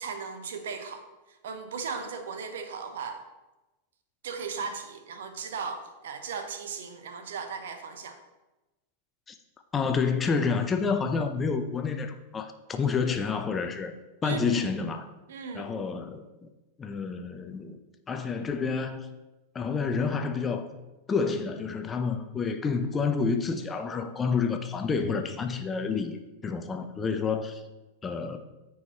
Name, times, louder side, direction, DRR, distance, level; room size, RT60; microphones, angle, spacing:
voice 1, 0.0-3.2 4.2-8.2 14.2-14.7 15.3-15.7, right 5 dB, 60° right, 7 dB, 0.9 m, -37 dB
voice 2, 9.7-13.9 14.2-15.1 15.5-16.5 16.8-17.8 18.1-19.1 19.5-20.7 21.1-26.2 26.4-27.6 28.0-28.4, left 5 dB, 20° left, 7 dB, 0.7 m, -29 dB
13.0 x 4.9 x 3.0 m, 1.1 s
figure-of-eight pair, 90°, 0 cm